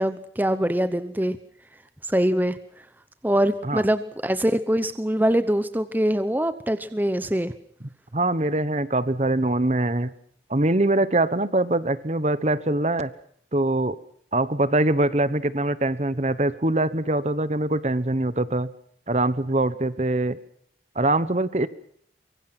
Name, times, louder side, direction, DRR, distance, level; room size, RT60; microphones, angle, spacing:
voice 1, 0.0-1.4 2.0-2.6 3.2-7.5, right 1 dB, 10° right, 11 dB, 0.9 m, -23 dB
voice 2, 8.1-10.1 10.5-13.1 13.5-14.0 14.3-18.7 19.1-20.4 20.9-21.7, right 2 dB, 40° right, 15 dB, 1.1 m, -23 dB
24.5 x 23.0 x 6.0 m, 0.64 s
head